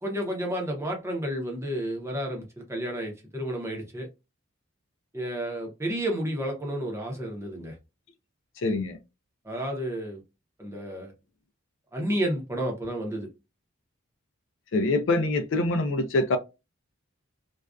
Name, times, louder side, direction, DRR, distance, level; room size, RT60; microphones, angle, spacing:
voice 1, 0.0-4.1 5.1-7.7 9.4-10.2 10.6-11.1 11.9-13.3, right 1 dB, 10° right, 0.6 m, -31 dB
voice 2, 8.6-9.0 14.7-16.4, left 2 dB, 60° left, 0.4 m, -24 dB
2.4 x 2.2 x 2.3 m
head